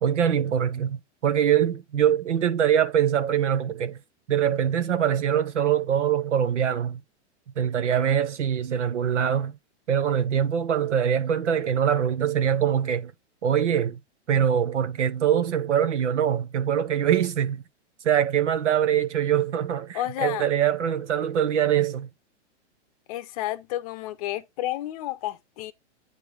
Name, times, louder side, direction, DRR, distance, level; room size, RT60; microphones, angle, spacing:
voice 1, 0.0-4.0 4.3-7.0 7.6-9.5 9.9-13.1 13.4-14.0 14.3-17.6 18.0-22.1, right 9 dB, 90° right, 1.1 m, -23 dB
voice 2, 19.9-20.5 23.1-25.7, left 14 dB, 30° left, 0.7 m, -31 dB
8.7 x 3.4 x 4.8 m
hypercardioid pair, 155°, 35 cm